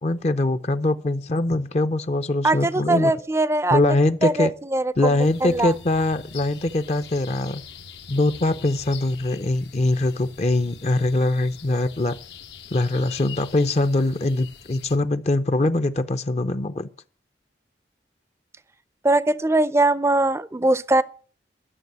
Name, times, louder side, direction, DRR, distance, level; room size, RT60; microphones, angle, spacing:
voice 1, 0.0-3.1 3.7-4.5 5.0-7.6 8.1-12.2 12.7-16.9, left 2 dB, 40° left, 0.6 m, -22 dB
voice 2, 2.4-3.8 4.2-5.7 19.0-21.0, right 2 dB, 15° right, 0.5 m, -21 dB
sound 1, 5.2-15.0, left 7 dB, 80° left, 1.1 m, -44 dB
12.5 x 6.7 x 8.0 m
head